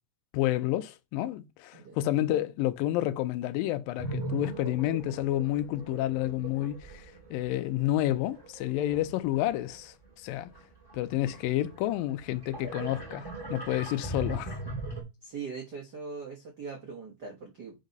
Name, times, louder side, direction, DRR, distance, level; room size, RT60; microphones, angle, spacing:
voice 1, 0.3-10.5 10.9-14.6, left 14 dB, 85° left, 2.3 m, -30 dB
sound 1, 4.0-9.9 10.4-15.0, right 2 dB, 10° right, 2.1 m, -40 dB
voice 2, 15.2-17.7, right 5 dB, 70° right, 0.9 m, -41 dB
5.4 x 3.9 x 5.2 m
omnidirectional pair, 4.1 m